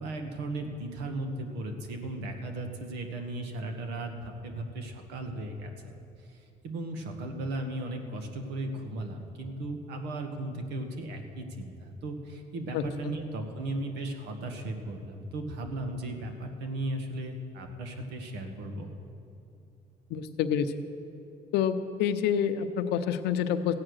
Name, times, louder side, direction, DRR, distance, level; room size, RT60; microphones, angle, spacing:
voice 1, 0.0-6.0 6.3-18.9, right 2 dB, 85° right, 5 dB, 1.4 m, -36 dB
voice 2, 12.7-13.1 20.1-20.7 21.5-23.7, left 8 dB, 85° left, 9 dB, 0.7 m, -28 dB
15.0 x 8.8 x 6.4 m, 2.6 s
cardioid pair, 110°, 17 cm